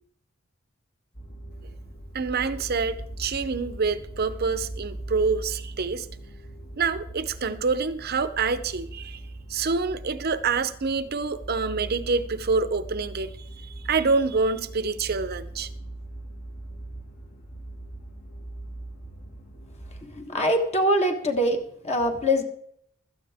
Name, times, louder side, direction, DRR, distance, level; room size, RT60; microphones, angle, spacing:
sound 1, 1.1-20.0, right 1 dB, 50° left, 1.8 m, -40 dB
voice 1, 2.1-6.1 6.8-9.2 9.5-13.3 13.9-15.7, right 4 dB, 50° right, 13 dB, 0.7 m, -26 dB
voice 2, 20.1-21.6 21.8-22.4, equal, 30° left, 3 dB, 1.4 m, -23 dB
16.0 x 13.0 x 3.6 m, 0.69 s
head